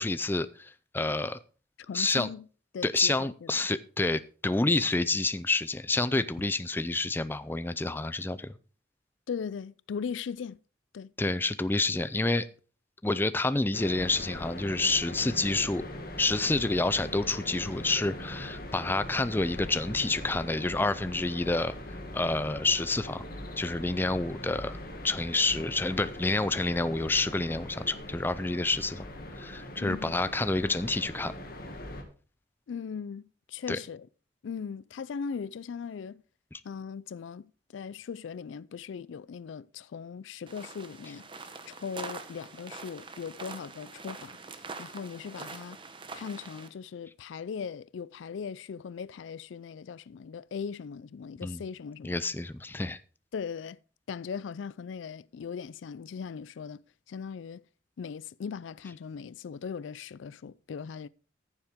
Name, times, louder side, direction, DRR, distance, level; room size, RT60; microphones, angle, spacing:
voice 1, 0.0-1.4 1.9-2.3 2.8-8.5 11.2-12.5 13.0-15.8 16.2-21.7 22.1-23.2 23.6-24.8 25.0-29.1 29.4-31.3 33.7-33.8 36.5-36.6 51.4-51.6 52.0-53.0, left 2 dB, 10° left, 0.4 m, -28 dB
voice 2, 1.9-2.5 2.7-3.7 9.3-10.6 10.9-11.1 29.8-30.2 32.7-34.1 34.4-36.2 36.6-41.3 41.7-44.4 44.8-45.8 46.1-52.2 53.3-53.8 54.1-57.7 58.0-61.1, left 6 dB, 80° left, 0.4 m, -39 dB
sound 1, 13.7-32.0, left 1 dB, 50° left, 2.0 m, -41 dB
sound 2, 40.5-46.7, right 4 dB, 25° right, 0.9 m, -44 dB
14.5 x 7.2 x 3.6 m
head